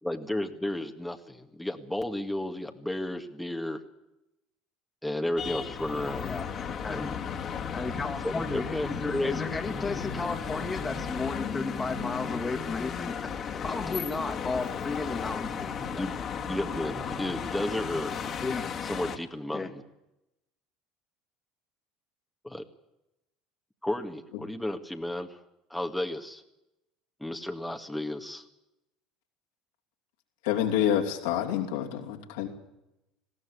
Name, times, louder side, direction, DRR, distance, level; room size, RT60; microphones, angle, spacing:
voice 1, 0.0-3.8 5.0-6.3 6.9-7.1 8.2-9.3 15.9-16.1 16.5-18.2 18.8-19.8 22.4-22.6 23.8-25.4 25.7-26.4 27.2-28.4, left 1 dB, 5° left, 4 dB, 1.8 m, -33 dB
sound 1, 5.4-19.2, left 6 dB, 40° left, 2.4 m, -34 dB
voice 2, 7.7-13.2 13.6-16.0 18.4-18.7 19.5-19.7, left 3 dB, 20° left, 7 dB, 2.2 m, -34 dB
voice 3, 30.4-32.5, left 10 dB, 75° left, 2 dB, 3.1 m, -27 dB
20.0 x 16.5 x 8.4 m, 0.90 s
hypercardioid pair, 70°, 0 cm